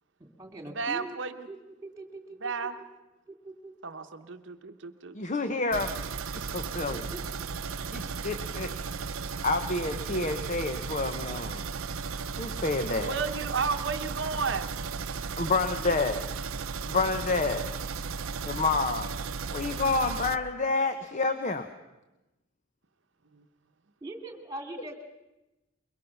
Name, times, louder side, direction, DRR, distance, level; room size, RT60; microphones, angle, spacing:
voice 1, 0.2-1.2 1.5-1.6 1.8-2.5 3.4-3.7 6.9-7.2 24.0-25.0, right 2 dB, 15° right, 5 dB, 2.5 m, -41 dB
voice 2, 0.7-1.5 2.4-2.8 3.8-5.2 13.0-14.7, right 5 dB, 60° right, 6 dB, 0.9 m, -32 dB
voice 3, 5.1-5.9 6.3-7.0 7.9-8.7 9.4-11.6 12.4-13.2 15.4-16.2 16.9-17.7 18.4-19.1 19.5-21.7, left 3 dB, 35° left, 8 dB, 0.9 m, -29 dB
sound 1, 5.7-20.4, right 5 dB, 85° right, 0.7 m, -35 dB
23.5 x 22.5 x 5.9 m, 1.0 s
head